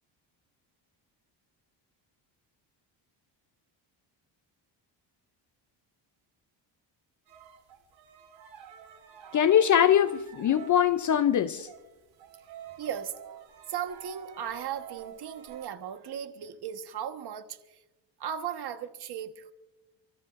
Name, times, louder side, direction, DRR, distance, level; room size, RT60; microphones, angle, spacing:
sound 1, 7.3-11.1 11.4-15.7, right 9 dB, 80° right, 4.8 m, -49 dB
voice 1, 9.3-11.7, left 9 dB, 40° left, 0.6 m, -22 dB
voice 2, 12.8-13.1 13.7-17.8 18.2-19.5, right 9 dB, 55° right, 1.4 m, -36 dB
29.0 x 14.0 x 2.5 m
cardioid pair, 120°, 45 cm